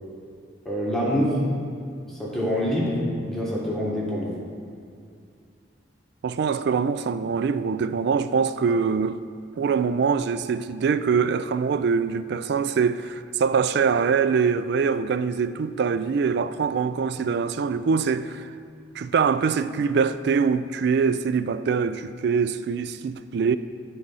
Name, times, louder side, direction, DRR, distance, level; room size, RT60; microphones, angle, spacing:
voice 1, 0.6-1.5 2.1-4.3, equal, ahead, 1.4 m, -25 dB
voice 2, 6.2-9.2 9.6-18.4 19.0-23.6, right 5 dB, 60° right, 0.3 m, -23 dB
11.5 x 4.0 x 5.5 m
head